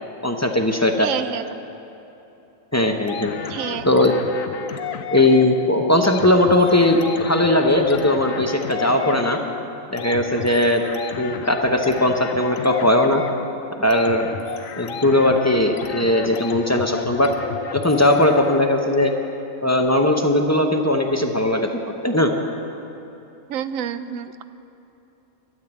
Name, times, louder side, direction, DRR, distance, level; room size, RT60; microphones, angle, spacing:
voice 1, 0.2-1.1 2.7-3.3 3.8-4.1 5.1-9.4 9.9-10.8 11.2-13.2 13.8-14.3 14.8-17.3 17.7-19.1 19.6-21.7 22.0-22.3, left 1 dB, 15° left, 3 dB, 0.6 m, -18 dB
voice 2, 1.0-1.4 3.5-3.8 23.5-24.4, right 9 dB, 80° right, 12 dB, 1.0 m, -28 dB
sound 1, 3.1-18.8, left 8 dB, 80° left, 1.1 m, -33 dB
13.0 x 7.9 x 8.8 m, 3.0 s
omnidirectional pair, 1.4 m